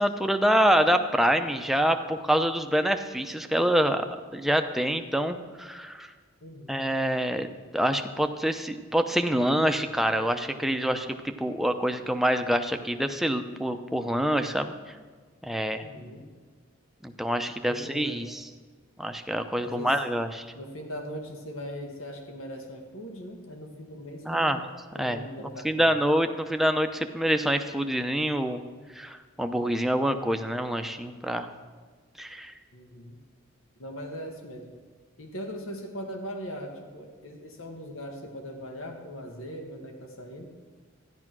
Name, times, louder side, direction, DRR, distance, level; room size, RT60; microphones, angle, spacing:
voice 1, 0.0-4.0 4.3-6.1 6.7-7.5 7.7-14.7 15.4-15.8 17.0-18.4 19.0-20.5 24.2-24.6 25.0-25.2 25.6-28.6 29.0-31.5 32.2-32.5, equal, ahead, 6 dB, 0.7 m, -26 dB
voice 2, 15.8-16.2 17.7-18.3 19.6-20.0 20.5-24.6 24.9-25.9 32.7-33.2 33.8-34.7 35.2-40.5, equal, 80° left, 2 dB, 1.9 m, -40 dB
13.5 x 11.0 x 6.1 m, 1.5 s
head